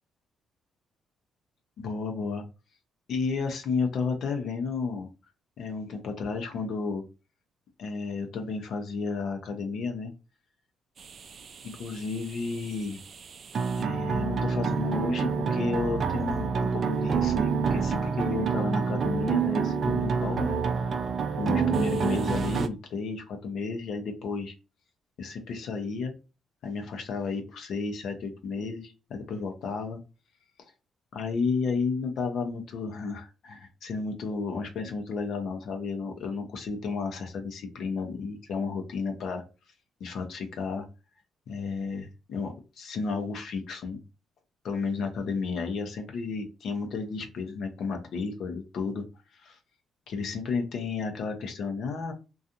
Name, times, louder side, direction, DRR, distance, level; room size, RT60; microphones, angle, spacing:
voice 1, 1.8-2.4 3.1-5.1 5.6-7.0 7.8-10.1 11.6-13.0 13.8-21.1 21.4-24.5 25.2-26.1 26.6-30.0 31.1-39.4 40.0-40.9 41.5-44.0 44.6-49.0 49.3-49.6 50.1-52.1, left 4 dB, 70° left, 4 dB, 0.6 m, -32 dB
sound 1, 11.0-22.7, right 6 dB, 50° right, 0.4 m, -28 dB
2.5 x 2.3 x 2.6 m, 0.30 s
cardioid pair, 90°, 0 cm